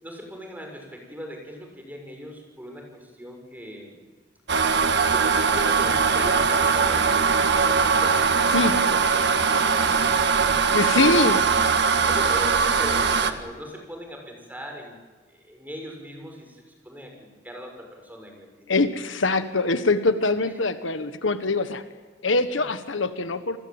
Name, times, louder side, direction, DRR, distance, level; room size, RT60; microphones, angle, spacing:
voice 1, 0.0-4.0 5.1-11.1 11.5-15.0 15.3-18.8, equal, 10° right, 2 dB, 6.3 m, -39 dB
sound 1, 4.5-13.3, right 5 dB, 60° right, 1.7 m, -21 dB
voice 2, 10.7-11.4 18.7-21.8 22.2-23.6, left 3 dB, 70° left, 11 dB, 1.4 m, -23 dB
29.0 x 20.0 x 8.9 m, 1.4 s
head